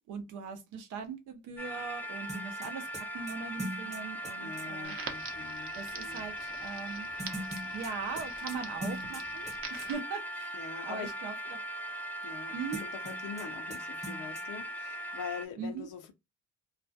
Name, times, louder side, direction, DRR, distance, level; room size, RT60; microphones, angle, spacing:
voice 1, 0.1-5.0 5.7-7.1 7.6-11.6 12.5-12.8 15.6-15.9, right 5 dB, 90° right, 0.6 m, -40 dB
sound 1, 1.6-15.5, equal, 5° left, 0.3 m, -40 dB
sound 2, 2.3-4.7 7.2-9.5 9.8-9.9 12.7-13.4 13.7-13.8 14.0-14.4, right 1 dB, 20° right, 0.9 m, -41 dB
voice 2, 4.4-6.2 10.5-11.1 12.2-12.5 12.8-16.1, left 7 dB, 85° left, 0.5 m, -44 dB
Crackle, 4.8-9.9, right 6 dB, 45° right, 0.6 m, -46 dB
2.3 x 2.1 x 2.6 m
cardioid pair, 90°, 30 cm